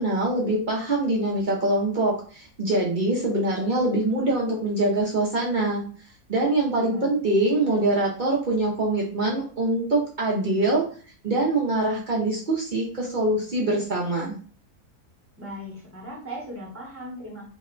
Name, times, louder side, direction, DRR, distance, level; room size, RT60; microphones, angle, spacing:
voice 1, 0.0-5.8 6.3-10.8 11.2-14.4, right 2 dB, 65° right, -3 dB, 0.5 m, -24 dB
voice 2, 6.8-7.1 15.4-17.5, equal, 10° right, -4 dB, 0.8 m, -38 dB
2.8 x 2.1 x 3.7 m, 0.43 s
omnidirectional pair, 1.7 m